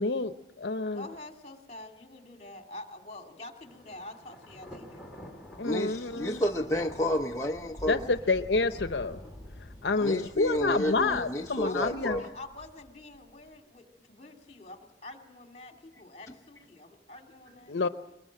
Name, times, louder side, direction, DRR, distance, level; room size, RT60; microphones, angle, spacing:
voice 1, 0.0-1.0 5.6-6.4 7.9-9.2 9.8-12.2 17.7-17.9, left 3 dB, 85° left, 0.8 m, -28 dB
voice 2, 0.9-5.1 11.6-17.9, left 2 dB, 35° left, 2.6 m, -47 dB
Thunder, 3.6-13.5, left 1 dB, ahead, 3.4 m, -48 dB
voice 3, 5.6-8.1 10.0-12.3, equal, 15° left, 0.8 m, -30 dB
22.0 x 21.0 x 7.5 m
head